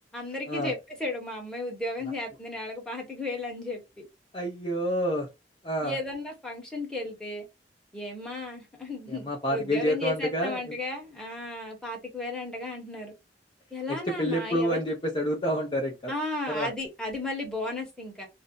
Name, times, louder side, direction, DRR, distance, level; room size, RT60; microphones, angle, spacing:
voice 1, 0.1-4.1 5.8-7.5 7.9-13.1 13.7-14.8 16.1-18.3, left 2 dB, 5° left, 1.1 m, -34 dB
voice 2, 4.3-5.3 5.6-6.0 9.1-10.8 13.9-16.1 16.5-16.7, equal, 30° left, 0.5 m, -28 dB
2.5 x 2.0 x 3.7 m
head